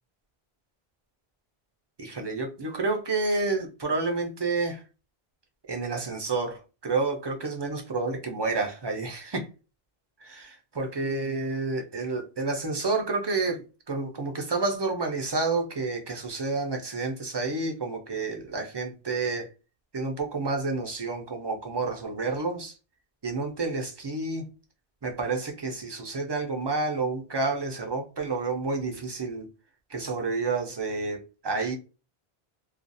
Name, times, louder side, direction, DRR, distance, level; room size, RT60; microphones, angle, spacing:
voice 1, 2.0-4.8 5.7-9.5 10.2-19.5 19.9-22.8 23.2-24.5 25.0-29.5 29.9-31.7, right 3 dB, 30° right, 0.6 m, -29 dB
2.4 x 2.3 x 2.6 m
omnidirectional pair, 1.0 m